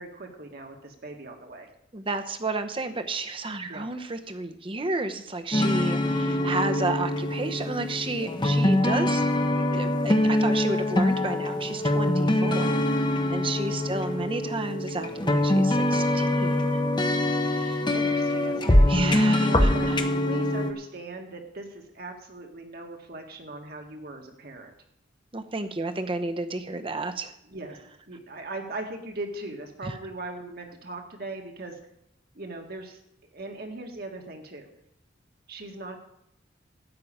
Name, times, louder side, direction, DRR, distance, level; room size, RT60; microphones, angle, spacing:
voice 1, 0.0-1.7 3.6-3.9 13.8-14.4 17.9-19.9 20.2-24.7 27.4-27.8 28.1-31.8 32.3-33.0 33.3-34.7 35.5-36.0, right 2 dB, 55° right, 3 dB, 1.8 m, -39 dB
voice 2, 1.9-9.2 9.7-12.8 13.3-16.8 17.3-17.8 18.9-20.0 25.3-27.3 29.8-29.9, right 2 dB, 30° right, 8 dB, 0.8 m, -32 dB
sound 1, 5.5-20.7, left 1 dB, 25° left, 0.9 m, -24 dB
13.0 x 5.7 x 8.7 m, 0.78 s
head